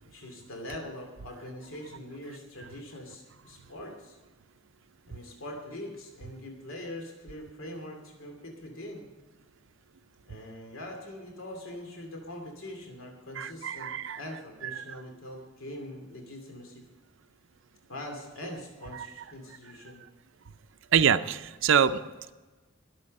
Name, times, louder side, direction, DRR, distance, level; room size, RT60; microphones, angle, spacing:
voice 1, 0.0-4.2 5.1-9.1 10.3-16.9 17.9-20.0, left 1 dB, 75° left, 2 dB, 2.7 m, -43 dB
voice 2, 13.4-14.2 14.8-15.0 18.9-19.2 20.9-22.0, right 7 dB, 65° right, 10 dB, 0.5 m, -26 dB
21.0 x 7.5 x 5.3 m, 1.2 s
head